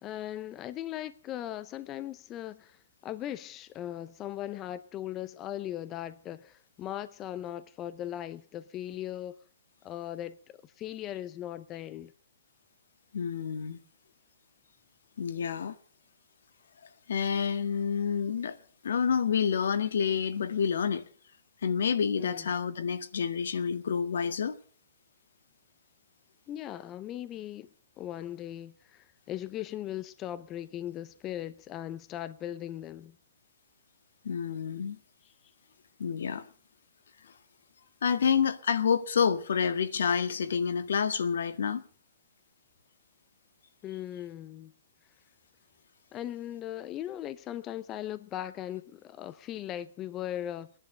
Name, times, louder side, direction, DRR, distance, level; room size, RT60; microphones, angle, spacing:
voice 1, 0.0-9.4 9.8-10.4 10.6-12.1 22.2-22.5 26.5-27.7 28.0-33.2 35.2-35.3 43.8-44.7 46.1-50.7, left 12 dB, 25° left, 0.7 m, -38 dB
voice 2, 13.1-13.8 15.2-15.8 17.1-18.6 18.8-21.0 21.6-24.6 34.2-35.0 36.0-36.5 37.2-37.3 38.0-41.8, left 6 dB, 75° left, 1.8 m, -28 dB
19.5 x 11.0 x 6.4 m
hypercardioid pair, 145°, 0 cm